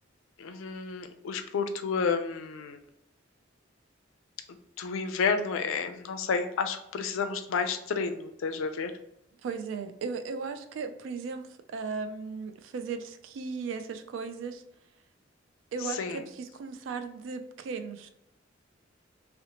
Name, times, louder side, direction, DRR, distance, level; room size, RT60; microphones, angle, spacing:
voice 1, 0.4-2.8 4.8-8.9 15.9-16.2, left 5 dB, 85° left, 8 dB, 0.4 m, -30 dB
voice 2, 9.4-14.6 15.7-18.1, right 5 dB, 75° right, 8 dB, 0.3 m, -36 dB
2.7 x 2.0 x 2.8 m, 0.80 s
head